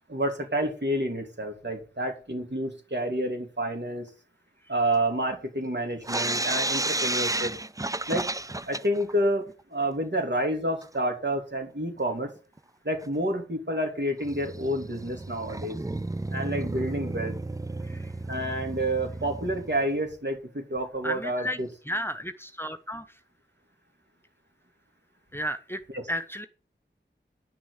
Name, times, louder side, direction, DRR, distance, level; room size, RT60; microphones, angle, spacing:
voice 1, 0.1-4.1 4.7-7.5 8.1-8.3 8.6-12.3 12.8-15.8 16.3-17.3 18.3-21.7 25.9-26.1, right 1 dB, 65° right, 3.1 m, -29 dB
sound 1, 6.0-9.1 9.5-9.6 9.8-9.9 10.8-10.9 12.0-12.1 12.6-12.7 13.0-13.1 14.2-19.8, right 2 dB, 15° right, 0.4 m, -32 dB
voice 2, 21.0-21.6 21.9-23.0 25.3-25.8 26.1-26.5, equal, 10° left, 1.0 m, -33 dB
10.0 x 6.2 x 8.3 m
wide cardioid pair, 45°, 20 cm